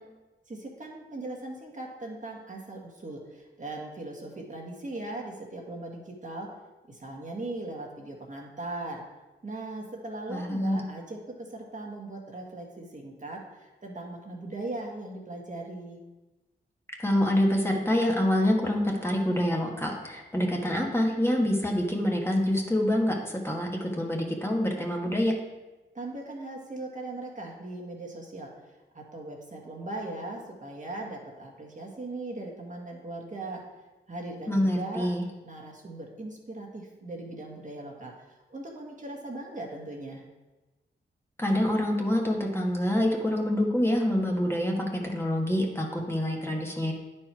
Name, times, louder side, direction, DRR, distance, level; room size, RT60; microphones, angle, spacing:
voice 1, 0.5-6.5 6.9-9.0 9.4-16.0 25.9-28.5 28.9-33.6 34.1-35.1 35.4-38.1 38.5-40.2, right 2 dB, 40° right, -1 dB, 1.6 m, -39 dB
voice 2, 10.3-10.9 17.0-25.3 34.5-35.2 41.4-46.9, left 1 dB, 10° left, -1 dB, 1.5 m, -26 dB
9.5 x 4.5 x 4.6 m, 1.1 s
cardioid pair, 55°, 20 cm